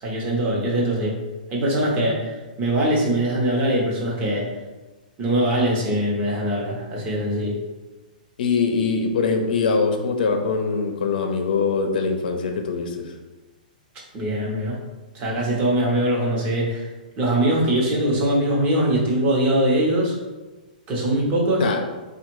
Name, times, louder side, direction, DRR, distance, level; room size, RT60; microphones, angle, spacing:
voice 1, 0.0-1.2 1.5-4.5 5.2-7.6 14.1-14.8 15.1-16.9 17.2-20.2 20.9-21.7, right 1 dB, 25° right, -3 dB, 1.1 m, -22 dB
voice 2, 8.4-13.1 21.6-21.8, left 4 dB, 70° left, 4 dB, 0.7 m, -23 dB
3.6 x 2.4 x 4.6 m, 1.2 s
hypercardioid pair, 150°, 5 cm